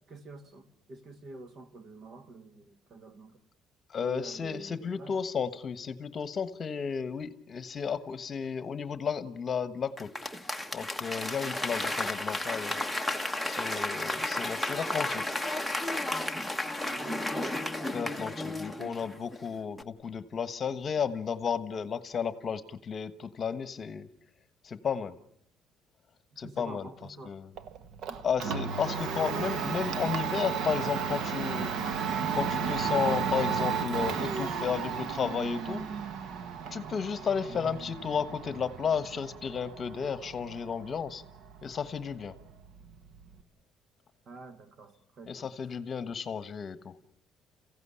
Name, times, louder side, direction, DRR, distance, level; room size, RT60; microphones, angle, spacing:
voice 1, 0.1-3.4 4.0-5.2 11.4-11.9 16.8-18.1 18.8-19.1 26.3-27.4 28.1-28.6 37.5-37.8 44.3-45.8, right 2 dB, 50° right, 2.1 m, -48 dB
voice 2, 3.9-10.1 10.7-12.8 13.5-15.2 17.9-24.1 24.6-25.2 26.4-26.9 27.2-27.4 28.2-31.7 32.3-35.9 36.7-41.2 41.6-42.4 45.3-46.9, left 6 dB, 40° left, 1.3 m, -33 dB
Applause / Crowd, 10.0-19.4 19.8-19.9, left 1 dB, ahead, 1.2 m, -33 dB
Domestic sounds home sounds, 27.6-43.4, right 6 dB, 65° right, 1.5 m, -34 dB
29.0 x 16.0 x 9.9 m
cardioid pair, 115°, 0 cm